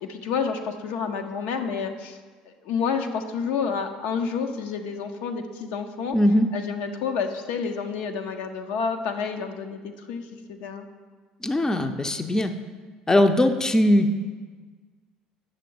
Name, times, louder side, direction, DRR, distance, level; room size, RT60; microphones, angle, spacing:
voice 1, 0.0-2.2 2.5-6.2 6.5-10.9, left 6 dB, 65° left, 5 dB, 0.6 m, -29 dB
voice 2, 6.1-6.5 11.4-12.5 13.1-14.2, left 1 dB, 15° left, 7 dB, 0.5 m, -20 dB
8.7 x 6.6 x 3.8 m, 1.5 s
hypercardioid pair, 65°, 4 cm